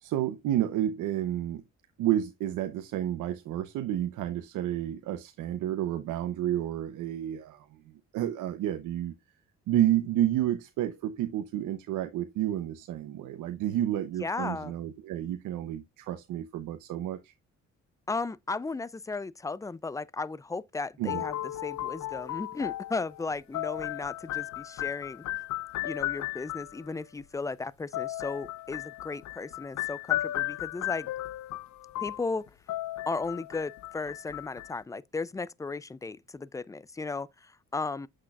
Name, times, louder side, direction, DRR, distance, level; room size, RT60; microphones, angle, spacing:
voice 1, 0.0-1.6 2.0-9.1 9.7-17.3 21.0-21.2, right 12 dB, 85° right, 0.8 m, -30 dB
voice 2, 14.2-14.7 18.1-21.4 21.6-25.2 25.8-31.1 32.0-32.5 33.1-38.1, left 3 dB, 10° left, 0.4 m, -35 dB
sound 1, 21.1-26.9 27.9-34.8, left 15 dB, 65° left, 0.5 m, -35 dB
7.7 x 6.4 x 2.3 m
cardioid pair, 90°, 30 cm